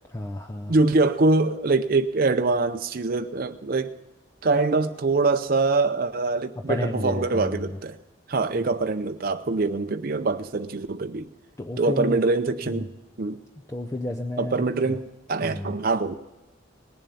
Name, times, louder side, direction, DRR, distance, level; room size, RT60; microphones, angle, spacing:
voice 1, 0.1-0.7 6.7-7.8 8.5-8.7 11.6-12.2 12.7-12.9 13.7-15.0 15.4-15.8, left 1 dB, 15° left, 0.5 m, -31 dB
voice 2, 0.7-3.9 4.4-8.0 8.3-11.3 11.8-12.9 13.2-13.4 14.4-16.2, right 3 dB, 45° right, 0.5 m, -24 dB
19.0 x 7.3 x 6.9 m
head